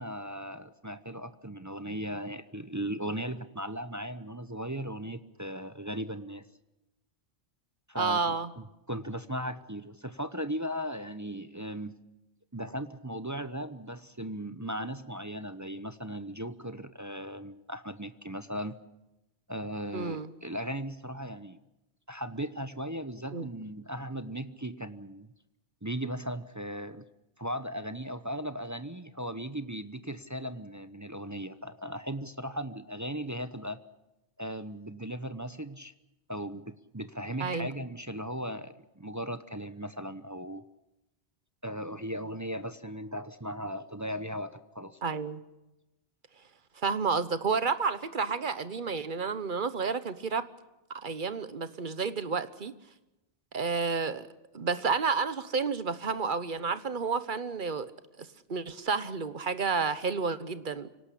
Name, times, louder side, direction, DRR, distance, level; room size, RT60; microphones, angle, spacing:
voice 1, 0.0-6.4 7.9-12.0 12.5-18.8 19.5-21.6 22.1-25.3 25.8-27.0 27.4-33.8 34.4-35.9 36.3-40.6 41.6-45.0, equal, 20° right, 11 dB, 0.7 m, -37 dB
voice 2, 8.0-8.5 19.9-20.3 23.3-23.5 37.4-37.7 45.0-45.4 46.8-50.5 51.0-52.7 53.5-54.3 54.5-57.9 58.2-60.9, right 5 dB, 45° right, 13 dB, 1.2 m, -30 dB
25.0 x 18.0 x 8.5 m, 0.97 s
omnidirectional pair, 1.2 m